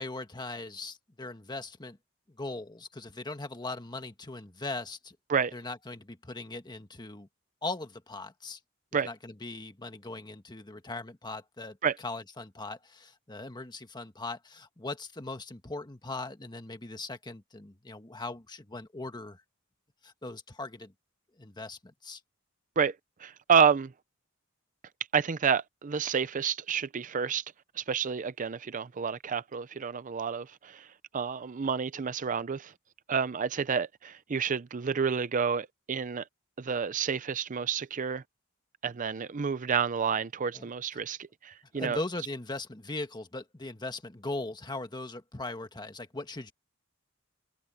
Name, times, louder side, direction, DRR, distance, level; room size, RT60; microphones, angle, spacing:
voice 1, 0.0-2.0 2.3-5.2 5.5-7.3 7.6-8.6 9.0-19.4 20.0-20.9 21.4-22.2 40.5-40.7 41.7-46.5, left 2 dB, 20° left, 1.5 m, -39 dB
voice 2, 22.8-23.9 25.1-27.4 27.8-30.9 31.1-32.7 33.1-36.2 36.6-38.2 38.8-42.0, right 6 dB, 40° right, 0.5 m, -29 dB
open air
head